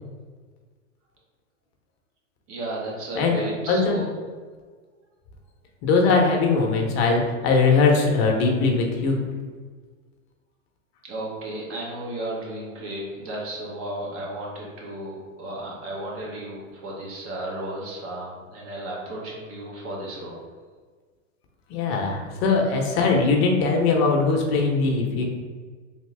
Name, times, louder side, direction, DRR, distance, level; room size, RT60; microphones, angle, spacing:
voice 1, 2.5-4.1 11.0-20.4, right 1 dB, 35° right, -3 dB, 1.2 m, -34 dB
voice 2, 3.1-4.0 5.8-9.2 21.7-25.2, left 4 dB, 50° left, 1 dB, 0.9 m, -21 dB
3.6 x 2.8 x 3.3 m, 1.5 s
hypercardioid pair, 110°, 39 cm